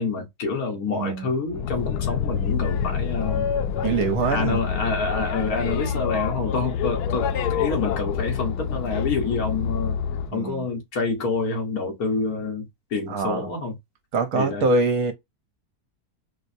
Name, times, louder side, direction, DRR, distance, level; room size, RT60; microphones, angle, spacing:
voice 1, 0.0-3.5 4.3-10.0 10.3-13.8 14.4-14.7, left 4 dB, 65° left, 1.7 m, -27 dB
voice 2, 0.9-1.3 3.8-4.6 10.3-10.6 13.1-13.5 14.1-15.1, right 3 dB, 70° right, 1.2 m, -24 dB
Boat Water vehicle, 1.5-10.3, left 7 dB, 85° left, 1.1 m, -27 dB
4.6 x 2.1 x 2.6 m
omnidirectional pair, 1.7 m